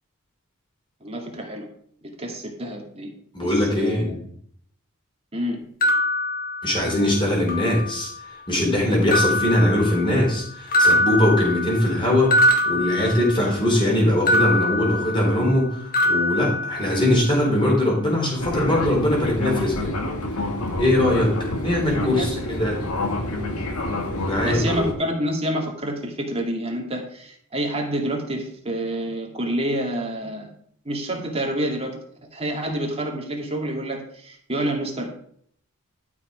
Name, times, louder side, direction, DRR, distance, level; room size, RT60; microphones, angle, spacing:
voice 1, 1.0-1.7 2.0-3.1 3.4-4.2 5.3-5.6 22.0-22.3 24.4-30.5 30.8-32.0 32.3-35.1, right 1 dB, 25° right, 1 dB, 2.3 m, -28 dB
voice 2, 3.3-4.2 6.6-8.1 8.5-15.8 16.0-19.9 20.8-21.4 21.6-22.8 24.2-24.9, left 1 dB, 20° left, -2 dB, 4.0 m, -21 dB
sound 1, 5.8-7.1 7.5-8.3 9.1-10.4 10.7-13.7 14.3-15.6 15.9-17.3, left 1 dB, 40° left, 1.4 m, -23 dB
Fixed-wing aircraft airplane, 18.4-24.9, left 1 dB, 80° left, 1.7 m, -28 dB
12.0 x 6.1 x 5.1 m, 0.64 s
head